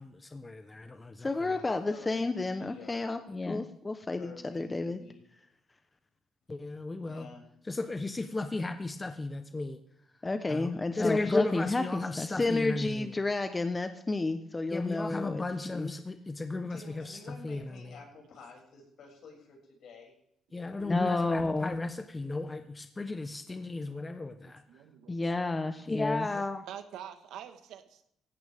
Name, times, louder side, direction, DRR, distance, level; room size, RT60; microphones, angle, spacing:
voice 1, 0.0-5.0 6.5-7.3 7.7-9.8 10.2-17.6 20.5-24.6 25.1-26.6, left 2 dB, 20° left, 8 dB, 1.0 m, -32 dB
voice 2, 1.5-3.2 4.2-5.2 7.0-7.5 15.9-16.3 16.7-20.1, left 4 dB, 70° left, 0 dB, 6.7 m, -51 dB
voice 3, 23.3-24.0 24.4-25.4 25.8-25.9 26.3-28.1, right 10 dB, 85° right, 7 dB, 1.6 m, -48 dB
17.5 x 16.0 x 3.6 m, 0.73 s
cardioid pair, 90°, 0 cm